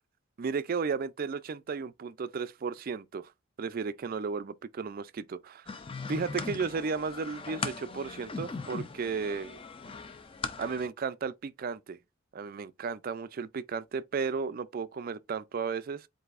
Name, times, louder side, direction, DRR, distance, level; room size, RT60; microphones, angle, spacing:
voice 1, 0.4-3.3 3.6-5.7 6.1-9.6 10.6-12.0 12.3-16.1, right 5 dB, 40° right, 0.3 m, -34 dB
sound 1, 5.7-10.9, left 4 dB, 25° left, 0.4 m, -39 dB
7.8 x 2.7 x 2.4 m
head